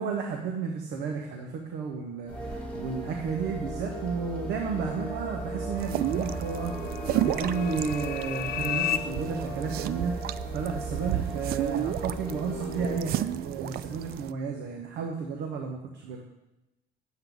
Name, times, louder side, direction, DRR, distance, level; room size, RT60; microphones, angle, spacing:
voice 1, 0.0-6.7 7.1-10.1 10.5-16.2, right 5 dB, 90° right, 2 dB, 1.2 m, -32 dB
sound 1, 2.3-13.0, right 2 dB, 10° left, 3.6 m, -36 dB
sound 2, 4.7-9.0, left 12 dB, 60° left, 0.6 m, -35 dB
sound 3, 5.8-14.3, right 13 dB, 65° right, 0.4 m, -33 dB
10.5 x 7.8 x 4.0 m, 0.95 s
cardioid pair, 110°, 17 cm